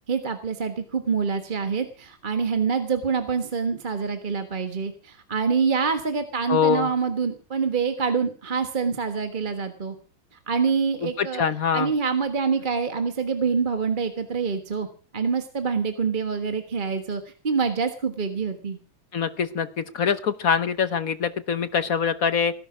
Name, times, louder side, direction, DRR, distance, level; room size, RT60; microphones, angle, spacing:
voice 1, 0.1-10.0 10.5-11.4 11.7-14.9 15.1-18.8, right 5 dB, 30° right, 7 dB, 1.2 m, -26 dB
voice 2, 6.5-6.9 11.2-11.9 19.1-22.5, left 7 dB, 55° left, 13 dB, 1.1 m, -24 dB
18.0 x 11.0 x 6.0 m, 0.39 s
omnidirectional pair, 2.3 m